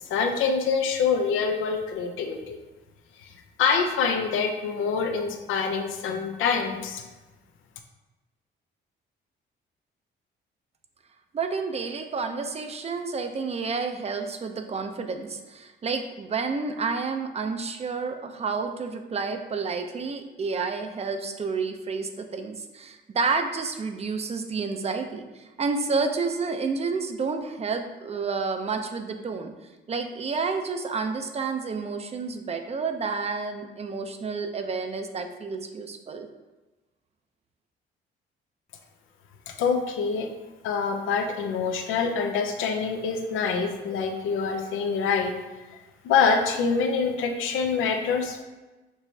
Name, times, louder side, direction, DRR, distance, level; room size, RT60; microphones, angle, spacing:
voice 1, 0.1-2.6 3.2-3.3 3.6-7.0 39.6-40.3 40.6-45.3 46.0-48.4, left 5 dB, 85° left, 4 dB, 0.6 m, -25 dB
voice 2, 11.3-29.5 29.9-36.3, right 4 dB, 30° right, 6 dB, 0.5 m, -30 dB
6.1 x 3.0 x 2.7 m, 1.2 s
cardioid pair, 90°, 20 cm